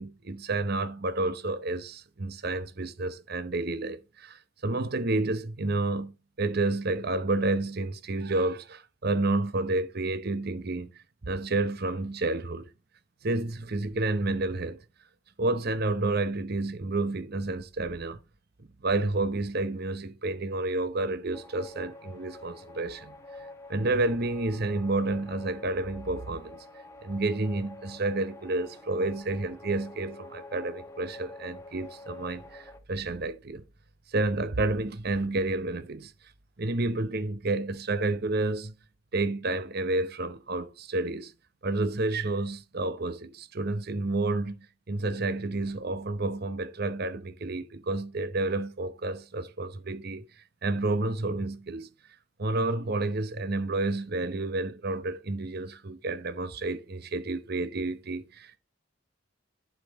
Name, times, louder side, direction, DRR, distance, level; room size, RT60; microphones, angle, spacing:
voice 1, 0.0-12.7 13.2-14.8 15.4-18.2 18.8-23.2 23.7-26.6 27.0-33.6 34.1-36.1 36.6-38.7 39.1-41.3 41.6-51.9 52.4-58.6, right 2 dB, 50° right, 0.8 m, -30 dB
sound 1, 21.3-32.8, left 2 dB, 15° left, 1.2 m, -47 dB
11.0 x 5.0 x 4.0 m
head